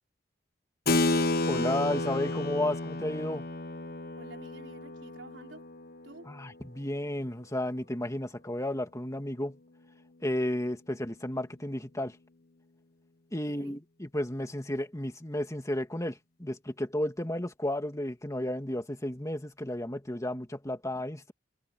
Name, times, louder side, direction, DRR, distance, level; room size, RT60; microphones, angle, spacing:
Keyboard (musical), 0.9-6.9, left 2 dB, 55° left, 1.4 m, -31 dB
voice 1, 1.5-3.5 6.3-9.6 10.2-12.2 13.3-21.3, left 1 dB, 15° left, 2.7 m, -33 dB
voice 2, 4.2-5.6 6.0-6.3 13.5-13.7, right 2 dB, 75° right, 4.8 m, -50 dB
head